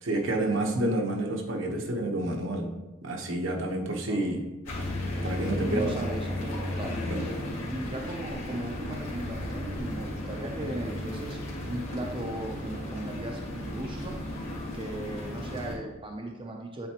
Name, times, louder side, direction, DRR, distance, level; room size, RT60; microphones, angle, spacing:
voice 1, 0.0-2.7 3.0-4.4 5.2-6.0 7.1-7.3, right 1 dB, 70° right, 1 dB, 1.0 m, -29 dB
sound 1, 4.6-15.7, left 1 dB, 80° left, 2.1 m, -34 dB
voice 2, 5.1-7.0 7.7-11.4 11.7-14.2 14.7-16.9, right 1 dB, 25° right, 0 dB, 0.6 m, -37 dB
9.0 x 3.9 x 2.9 m, 1.1 s
head